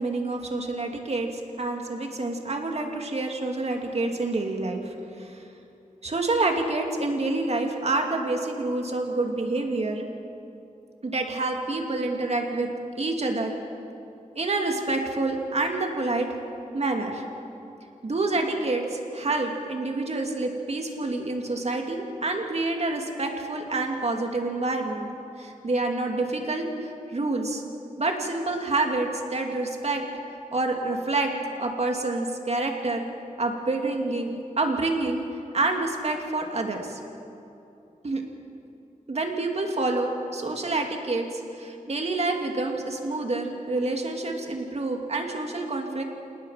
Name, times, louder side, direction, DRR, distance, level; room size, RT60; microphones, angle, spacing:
voice 1, 0.0-5.4 6.0-10.0 11.0-12.7 13.0-13.5 14.3-16.3 16.7-17.2 18.0-25.1 25.4-27.6 28.0-30.0 30.5-33.0 33.4-35.2 35.5-37.0 38.0-38.2 39.1-46.0, right 2 dB, 50° right, 3 dB, 2.6 m, -28 dB
28.5 x 18.5 x 5.8 m, 2.8 s
wide cardioid pair, 95°, 14 cm